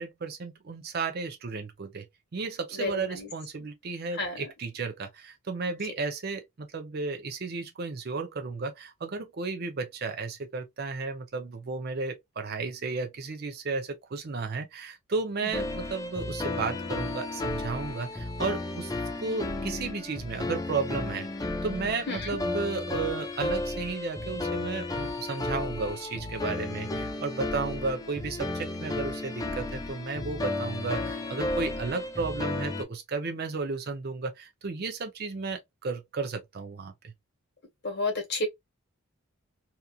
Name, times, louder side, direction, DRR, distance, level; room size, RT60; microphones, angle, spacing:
voice 1, 0.0-2.1 2.3-18.9 19.2-21.3 21.6-37.1, right 4 dB, 50° right, 0.5 m, -33 dB
sound 1, 15.5-32.8, left 2 dB, 15° left, 0.4 m, -33 dB
voice 2, 37.8-38.5, left 2 dB, 50° left, 1.2 m, -30 dB
2.8 x 2.4 x 2.3 m
head